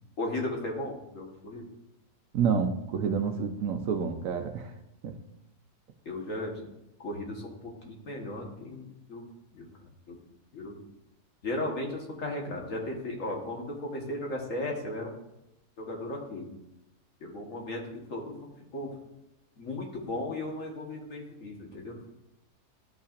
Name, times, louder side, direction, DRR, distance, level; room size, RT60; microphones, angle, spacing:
voice 1, 0.2-1.6 6.0-6.7 7.0-9.2 9.5-9.7 10.1-10.2 10.5-10.8 11.4-15.1 15.8-16.5 17.2-18.9 19.6-22.0, left 1 dB, 55° left, 0 dB, 1.7 m, -36 dB
voice 2, 2.3-4.7 5.0-5.1, right 6 dB, 65° right, 6 dB, 1.0 m, -29 dB
13.0 x 5.6 x 2.5 m, 0.86 s
omnidirectional pair, 1.7 m